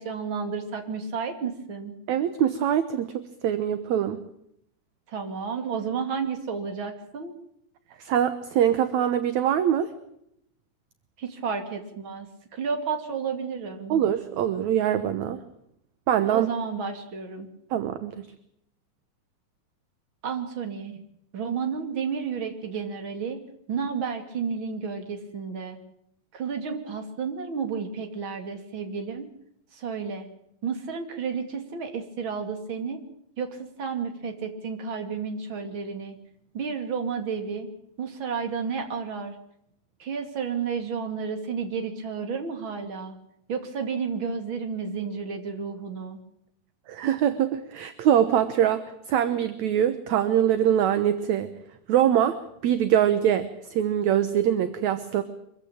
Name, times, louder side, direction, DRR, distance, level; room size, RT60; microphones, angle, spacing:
voice 1, 0.0-1.9 5.1-7.3 11.2-12.3 12.5-14.0 16.3-17.5 20.2-21.0 21.3-23.4 23.7-25.8 26.3-29.3 29.7-30.3 30.6-33.0 33.4-36.2 36.5-37.7 38.0-39.4 40.0-43.2 43.5-46.2, right 6 dB, 35° right, 6 dB, 3.0 m, -31 dB
voice 2, 2.1-4.2 8.0-9.9 13.9-15.4 16.1-16.5 17.7-18.3 46.9-51.5 51.9-52.4 52.6-55.2, right 10 dB, 65° right, 11 dB, 2.1 m, -23 dB
24.5 x 15.5 x 8.9 m, 0.76 s
omnidirectional pair, 4.2 m